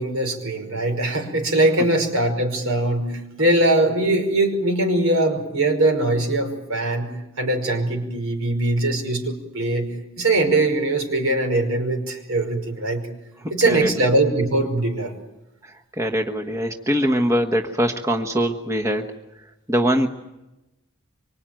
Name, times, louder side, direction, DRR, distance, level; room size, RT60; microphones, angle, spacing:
voice 1, 0.0-7.1 7.4-9.9 10.2-13.1 13.5-15.1, right 2 dB, 70° right, 5 dB, 5.3 m, -21 dB
voice 2, 13.4-13.9 15.6-19.1 19.7-20.1, equal, 15° right, 3 dB, 1.3 m, -22 dB
25.0 x 25.0 x 9.2 m, 0.97 s
head